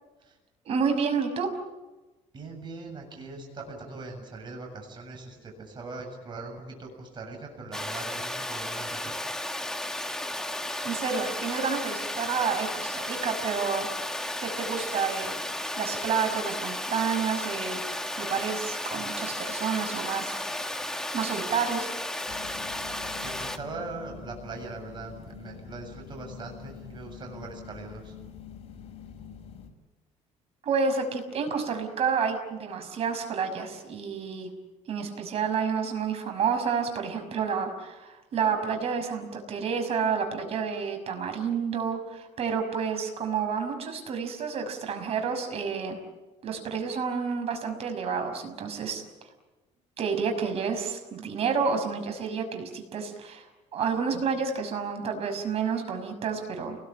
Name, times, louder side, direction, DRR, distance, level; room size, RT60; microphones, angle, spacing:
voice 1, 0.6-1.5 10.8-13.9 14.4-15.4 15.7-17.8 18.2-20.4 21.1-21.9 30.6-34.5 34.9-46.0 46.4-49.0 50.0-53.4 53.7-56.8, right 6 dB, 55° right, 6 dB, 6.0 m, -29 dB
voice 2, 2.3-9.2 23.2-28.1, right 3 dB, 40° right, 2 dB, 7.5 m, -41 dB
Water, 7.7-23.6, left 1 dB, 5° left, 1.8 m, -34 dB
sound 1, 22.3-29.7, left 7 dB, 55° left, 4.0 m, -45 dB
29.5 x 20.5 x 9.0 m, 1.1 s
cardioid pair, 130°, 13 cm